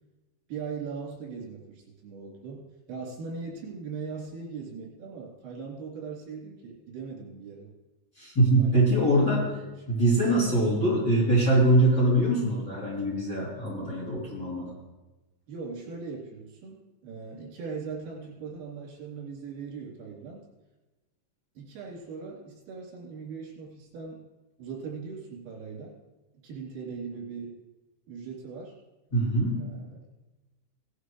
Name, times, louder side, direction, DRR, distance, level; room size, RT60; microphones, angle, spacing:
voice 1, 0.5-2.6 2.9-7.7 8.6-10.0 15.5-20.4 21.6-24.2 24.6-26.0 26.4-27.6 28.1-28.8 29.6-30.0, right 5 dB, 85° right, -4 dB, 6.2 m, -39 dB
voice 2, 8.2-9.4 9.9-14.7 29.1-29.6, right 1 dB, 25° left, -7 dB, 3.3 m, -23 dB
18.5 x 11.5 x 3.2 m, 1.1 s
omnidirectional pair, 5.7 m